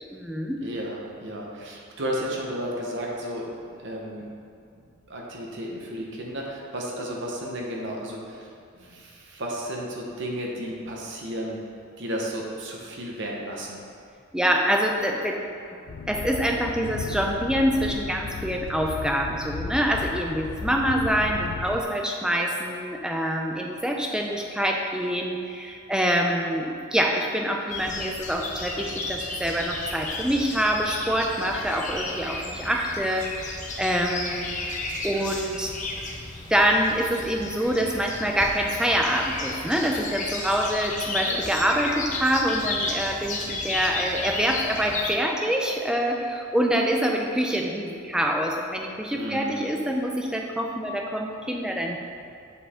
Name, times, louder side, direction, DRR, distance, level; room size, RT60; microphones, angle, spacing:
voice 1, 0.0-0.6 14.3-15.4 16.1-34.5 35.0-35.7 36.5-52.0, equal, 5° right, 1 dB, 0.4 m, -25 dB
voice 2, 0.6-3.5 3.8-4.3 4.7-11.6 12.0-13.8 41.2-41.4 49.1-49.6, equal, 60° right, -2 dB, 0.9 m, -33 dB
sound 1, 15.9-21.8, left 4 dB, 70° left, 0.3 m, -35 dB
sound 2, 27.7-45.1, left 2 dB, 35° left, 0.7 m, -33 dB
6.9 x 4.6 x 3.6 m, 2.5 s
head